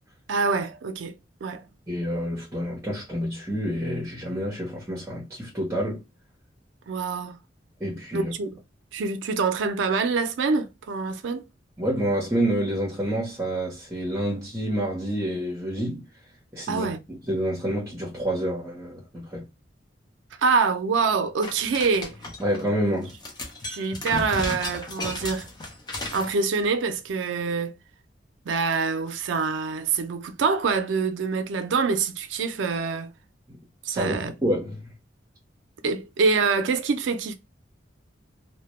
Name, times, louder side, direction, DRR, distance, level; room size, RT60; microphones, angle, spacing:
voice 1, 0.3-1.1 1.4-1.6 6.9-7.4 8.1-8.5 8.9-11.4 16.7-17.0 20.4-22.2 23.6-25.5 26.1-27.7 28.5-33.1 33.8-34.3 35.8-37.3, right 4 dB, 85° right, 0.4 m, -25 dB
voice 2, 1.9-6.0 7.8-8.3 11.8-16.0 16.5-19.5 22.4-23.1 33.9-34.9, equal, 15° right, 0.7 m, -28 dB
sound 1, 21.4-22.6 23.0-26.3, left 2 dB, 25° left, 0.5 m, -34 dB
2.1 x 2.1 x 2.9 m
head